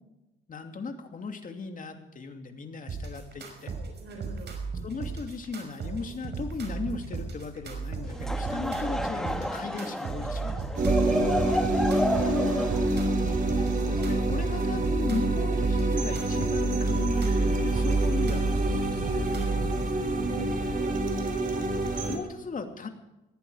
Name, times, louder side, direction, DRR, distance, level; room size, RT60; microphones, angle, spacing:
voice 1, 0.5-3.7 4.8-11.2 11.9-12.6 13.8-19.1 21.9-22.9, left 3 dB, 40° left, 5 dB, 2.8 m, -37 dB
sound 1, 2.9-19.9, right 4 dB, 60° right, 5.5 m, -36 dB
voice 2, 4.0-4.5 10.8-11.7 12.1-13.8 19.3-21.0, right 3 dB, 80° right, 4 dB, 5.8 m, -44 dB
Laughter / Crowd, 8.1-14.5, equal, 5° left, 1.9 m, -32 dB
sound 2, 10.8-22.2, right 2 dB, 40° right, 4.0 m, -26 dB
20.5 x 14.5 x 5.0 m, 0.96 s
cardioid pair, 90°, 20 cm